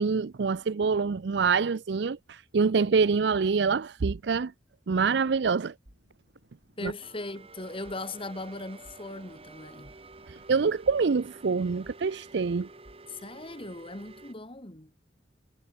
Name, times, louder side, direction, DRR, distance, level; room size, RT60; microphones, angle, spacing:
voice 1, 0.0-4.5 4.9-5.7 6.8-6.9 10.5-12.7, right 5 dB, 70° right, 0.5 m, -26 dB
sound 1, 5.9-13.4, right 1 dB, 85° right, 4.3 m, -59 dB
voice 2, 6.8-9.9 13.1-14.9, left 2 dB, 30° left, 2.7 m, -39 dB
sound 2, 7.0-14.3, right 3 dB, 35° right, 1.9 m, -50 dB
head